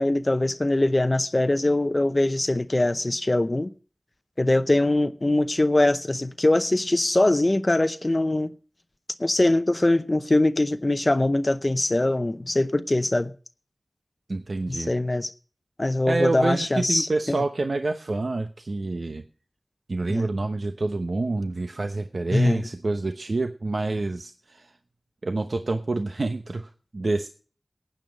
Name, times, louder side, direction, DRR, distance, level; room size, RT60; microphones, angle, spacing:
voice 1, 0.0-3.7 4.4-8.5 9.2-13.3 14.7-15.3 15.8-17.4 20.1-20.3 22.3-22.7, left 2 dB, 40° left, 0.7 m, -22 dB
voice 2, 14.3-14.9 16.1-19.2 19.9-24.7 25.2-27.3, right 2 dB, 75° right, 0.9 m, -27 dB
15.5 x 9.2 x 5.2 m
wide cardioid pair, 50°, 0 cm